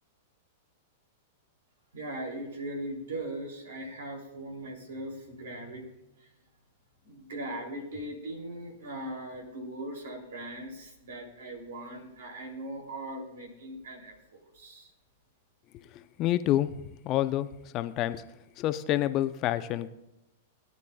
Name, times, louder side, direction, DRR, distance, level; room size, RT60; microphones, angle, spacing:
voice 1, 1.9-5.9 6.2-6.3 7.0-14.9, right 1 dB, 80° right, 2 dB, 3.0 m, -39 dB
voice 2, 15.8-16.8 17.0-17.5 17.7-18.2 18.6-19.9, left 13 dB, 40° left, 11 dB, 0.6 m, -28 dB
19.0 x 9.3 x 2.3 m, 0.89 s
hypercardioid pair, 115°, 0 cm